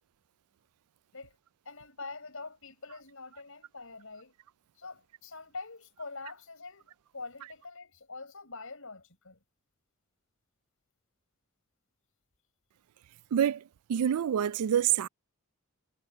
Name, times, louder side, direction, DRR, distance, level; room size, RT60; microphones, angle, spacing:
voice 1, 1.6-4.3 4.8-9.4, left 3 dB, 65° left, 7.4 m, -45 dB
voice 2, 13.3-13.6 13.9-15.1, right 9 dB, 90° right, 0.4 m, -26 dB
head